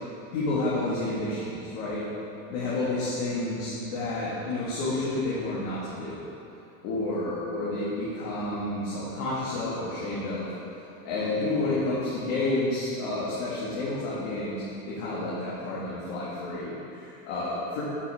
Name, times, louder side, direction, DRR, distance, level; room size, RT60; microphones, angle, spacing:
voice 1, 0.3-2.0 2.5-6.2 6.8-17.8, left 2 dB, 60° left, -9 dB, 2.1 m, -30 dB
8.9 x 6.2 x 4.4 m, 2.6 s
supercardioid pair, 145°, 44 cm